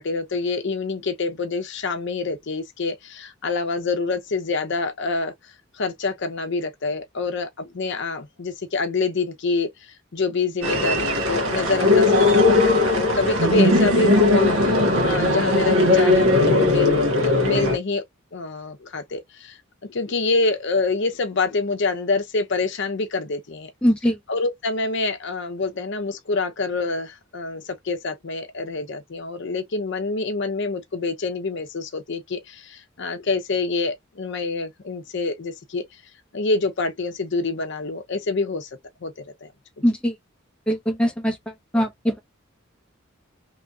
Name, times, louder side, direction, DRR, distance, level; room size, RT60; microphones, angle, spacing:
voice 1, 0.0-5.3 5.8-18.0 18.3-23.7 24.3-35.8 36.3-38.7 39.0-39.5, left 3 dB, 55° left, 0.6 m, -26 dB
sound 1, 10.6-17.8, left 2 dB, 85° right, 1.1 m, -18 dB
voice 2, 23.8-24.2 39.8-40.1 40.7-41.4 41.7-42.1, equal, 5° left, 0.6 m, -21 dB
3.0 x 2.7 x 2.3 m
head